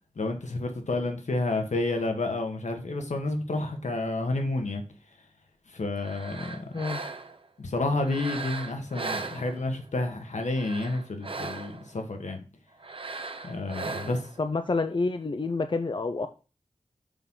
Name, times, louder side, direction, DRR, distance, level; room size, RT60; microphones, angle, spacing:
voice 1, 0.2-4.8 5.7-6.7 7.6-12.4 13.4-14.2, left 2 dB, 80° left, 1.5 m, -30 dB
sound 1, 6.0-7.5 8.0-9.9 10.4-11.9 12.8-14.4, right 3 dB, 50° right, 0.8 m, -38 dB
voice 2, 14.4-16.3, left 3 dB, 40° left, 0.5 m, -28 dB
7.0 x 6.0 x 3.8 m
wide cardioid pair, 75°, 12 cm